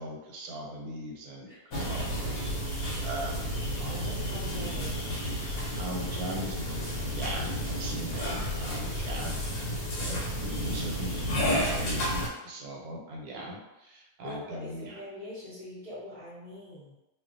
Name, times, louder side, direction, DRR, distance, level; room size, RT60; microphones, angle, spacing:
voice 1, 0.0-2.4 3.0-4.4 5.7-9.4 9.9-10.2 10.6-11.1 11.5-14.9, right 1 dB, 90° right, -1 dB, 1.1 m, -39 dB
sound 1, 1.7-12.3, equal, 70° left, 1.0 m, -31 dB
voice 2, 3.9-5.2 14.2-16.9, left 1 dB, 35° left, -11 dB, 0.6 m, -44 dB
2.5 x 2.2 x 2.4 m, 0.97 s
omnidirectional pair, 1.6 m